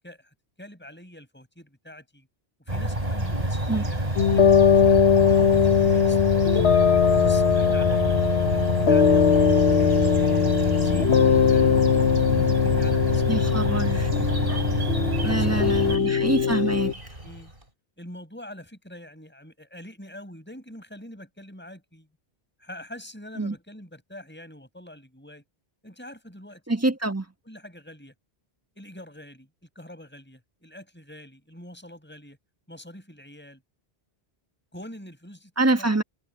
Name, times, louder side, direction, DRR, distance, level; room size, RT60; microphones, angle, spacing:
voice 1, 0.0-2.3 2.7-6.8 7.2-11.7 12.2-14.1 15.2-16.5 17.2-17.5 18.0-22.1 22.6-25.4 25.8-26.6 27.4-28.1 28.8-32.4 32.7-33.6 34.7-35.5 35.8-35.9, left 1 dB, 10° left, 5.8 m, -45 dB
sound 1, 2.7-16.0, right 1 dB, 35° right, 4.6 m, -27 dB
sound 2, 2.8-17.7, right 1 dB, 55° right, 5.1 m, -42 dB
sound 3, 4.2-16.9, left 7 dB, 85° left, 1.3 m, -20 dB
voice 2, 13.3-14.1 15.2-16.9 23.4-23.5 26.7-27.3 35.6-36.0, right 2 dB, 15° right, 1.3 m, -25 dB
omnidirectional pair, 1.1 m